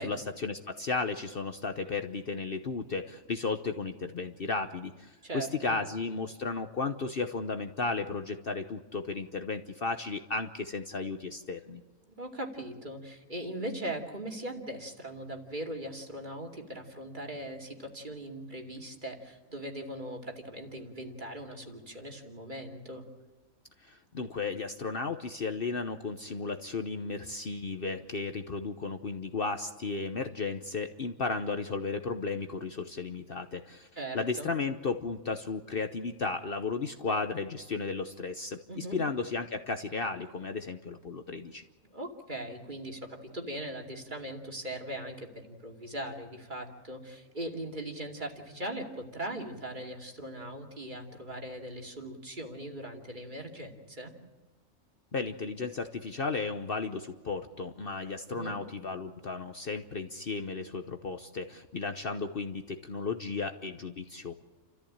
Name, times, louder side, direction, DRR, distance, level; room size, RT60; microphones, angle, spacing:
voice 1, 0.0-11.8 23.9-33.9 34.1-41.6 55.1-64.3, left 4 dB, 45° left, 7 dB, 1.1 m, -34 dB
voice 2, 5.2-5.8 12.1-23.1 34.0-34.5 38.7-39.0 41.8-54.1 58.3-58.5, right 1 dB, 35° right, 2 dB, 2.7 m, -40 dB
30.0 x 14.0 x 8.7 m, 1.2 s
omnidirectional pair, 1.4 m